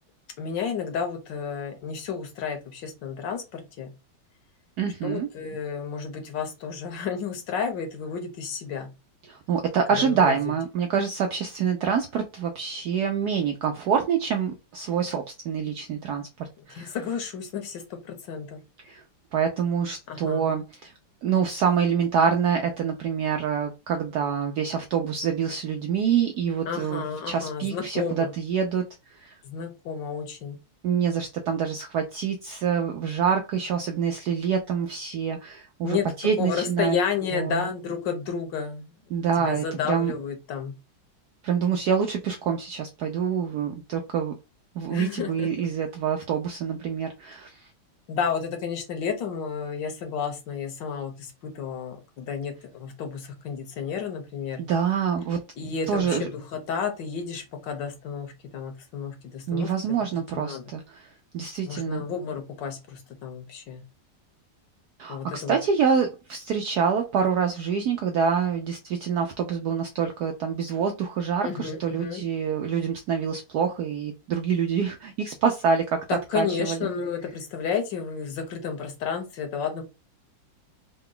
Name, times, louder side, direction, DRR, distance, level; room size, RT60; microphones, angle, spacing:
voice 1, 0.4-3.9 5.0-8.9 9.9-10.5 16.6-18.6 20.1-20.5 26.7-28.3 29.4-30.6 35.8-36.1 36.4-38.9 39.4-40.7 44.9-45.7 48.1-54.6 55.6-59.7 60.3-60.6 61.7-63.8 65.1-65.6 71.4-72.2 76.1-79.8, left 6 dB, 70° left, 1.4 m, -31 dB
voice 2, 4.8-5.3 9.3-17.0 18.8-19.0 19.3-20.9 21.2-28.8 29.1-29.4 30.8-37.0 37.3-37.7 39.1-40.1 41.4-44.3 44.8-47.6 54.6-55.4 55.9-56.3 59.5-61.1 61.3-62.0 65.0-76.0 76.3-76.8, right 7 dB, 80° right, 0.9 m, -26 dB
3.8 x 2.2 x 3.7 m
omnidirectional pair, 2.2 m